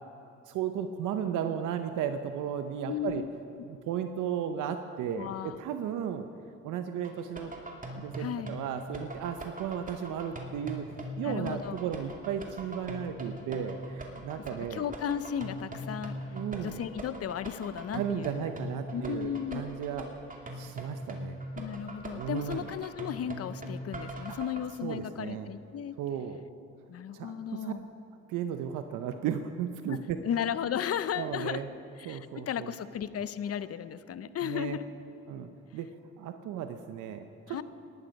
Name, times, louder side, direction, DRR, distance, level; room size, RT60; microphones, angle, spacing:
voice 1, 0.5-3.2 3.7-6.3 6.6-7.5 7.9-10.9 11.2-14.8 16.3-16.8 17.9-20.1 20.5-21.4 22.1-22.7 24.8-25.5 26.0-26.4 27.1-27.7 28.3-30.2 31.2-31.7 32.0-32.7 33.5-33.7 34.4-34.8 35.3-35.9 36.2-37.6, right 9 dB, 85° right, 8 dB, 0.7 m, -35 dB
voice 2, 2.9-3.3 5.2-5.6 8.2-8.6 11.2-11.8 14.7-16.2 16.6-18.4 18.9-19.6 21.6-25.9 26.9-27.9 29.9-30.0 30.2-31.6 32.0-34.9 37.5-37.6, left 9 dB, 50° left, 14 dB, 0.7 m, -35 dB
sound 1, 7.0-24.6, right 1 dB, 25° right, 2.4 m, -41 dB
18.0 x 12.0 x 5.3 m, 2.7 s
cardioid pair, 90°, 30 cm